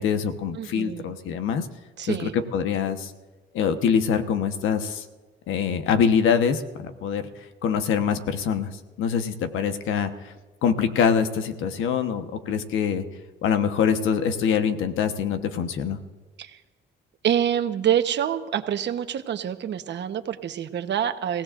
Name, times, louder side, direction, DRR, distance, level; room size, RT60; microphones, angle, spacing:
voice 1, 0.0-1.7 2.1-3.1 3.5-5.1 5.5-7.2 7.6-8.7 9.0-10.3 10.6-13.0 13.4-16.0, left 7 dB, 85° left, 8 dB, 1.2 m, -24 dB
voice 2, 0.5-1.2 2.0-2.4 16.4-16.6 17.2-21.4, right 9 dB, 65° right, 9 dB, 1.1 m, -26 dB
30.0 x 16.5 x 2.6 m, 1.3 s
cardioid pair, 90°, 20 cm